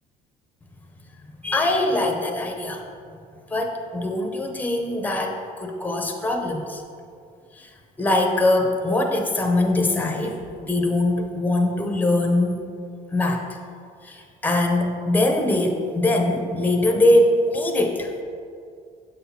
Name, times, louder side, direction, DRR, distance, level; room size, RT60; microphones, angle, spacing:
voice 1, 1.4-2.8 3.5-6.8 7.6-7.7 8.0-12.6 13.1-13.4 14.0-18.1, left 1 dB, 10° left, 3 dB, 0.6 m, -22 dB
6.6 x 5.7 x 2.8 m, 2.3 s
cardioid pair, 110°, 17 cm